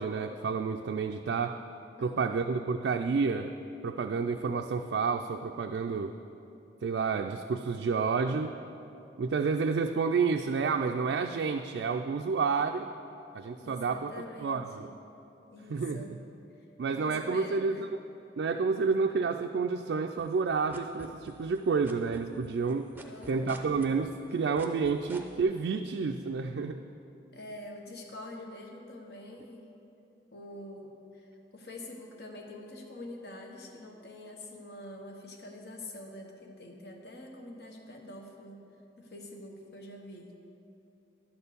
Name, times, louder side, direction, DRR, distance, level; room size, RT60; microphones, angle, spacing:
voice 1, 0.0-1.6 2.0-3.5 3.8-6.1 6.8-8.6 9.2-12.9 13.3-14.9 15.7-16.1 16.8-17.9 18.4-22.9 23.3-26.8, right 5 dB, 80° right, 4 dB, 0.3 m, -30 dB
voice 2, 2.0-2.4 13.5-14.9 15.5-16.1 16.9-17.8 23.0-23.7 27.3-29.7 30.3-38.6 39.0-40.3, left 1 dB, 65° left, 2 dB, 1.0 m, -46 dB
sound 1, 20.2-21.6 21.8-25.4, right 2 dB, 10° right, 0.5 m, -47 dB
11.5 x 4.4 x 6.8 m, 2.8 s
head